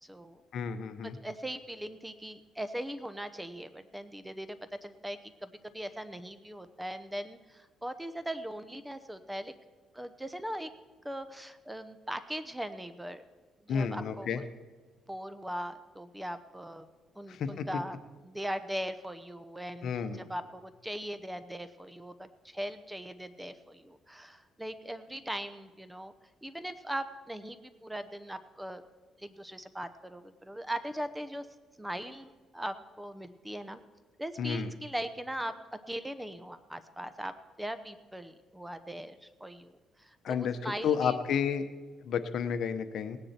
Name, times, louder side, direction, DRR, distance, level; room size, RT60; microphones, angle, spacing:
voice 1, 0.0-0.4 1.0-9.5 9.9-10.7 11.0-13.2 13.7-14.4 15.1-16.9 17.2-18.0 18.2-26.1 26.4-28.8 29.2-31.5 31.8-33.8 34.2-35.5 35.9-41.2, equal, 5° right, 12 dB, 0.8 m, -40 dB
voice 2, 0.5-1.2 13.7-14.4 17.3-17.7 19.8-20.2 34.4-34.7 40.2-41.6 42.1-43.2, left 7 dB, 65° left, 10 dB, 1.0 m, -31 dB
18.0 x 9.9 x 4.4 m, 1.4 s
cardioid pair, 105°, 0 cm